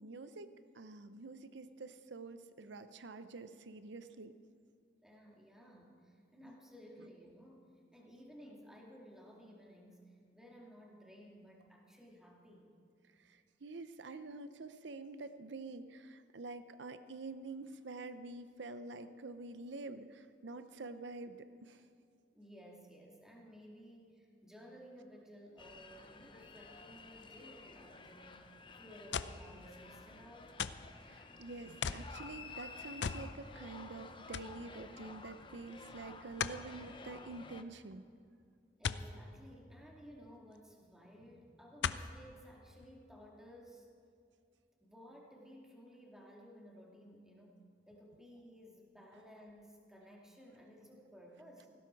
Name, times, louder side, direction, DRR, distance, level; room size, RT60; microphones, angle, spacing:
voice 1, 0.0-4.3 13.3-21.8 31.1-38.0, right 3 dB, 80° right, 11 dB, 0.7 m, -47 dB
voice 2, 5.0-7.7 7.9-12.7 22.3-28.5 28.8-30.5 31.2-31.3 38.8-43.9 44.8-47.6 47.9-51.7, equal, 5° right, -2 dB, 2.5 m, -56 dB
sound 1, 25.6-37.6, left 4 dB, 25° left, 0.8 m, -53 dB
sound 2, 29.1-29.5 30.6-30.9 31.8-32.1 33.0-33.3 33.7-33.8 34.3-34.6 36.4-36.6 38.8-39.1 40.5-40.6 41.8-42.1 42.8-42.9, left 6 dB, 75° left, 0.6 m, -37 dB
18.5 x 16.0 x 4.7 m, 2.4 s
head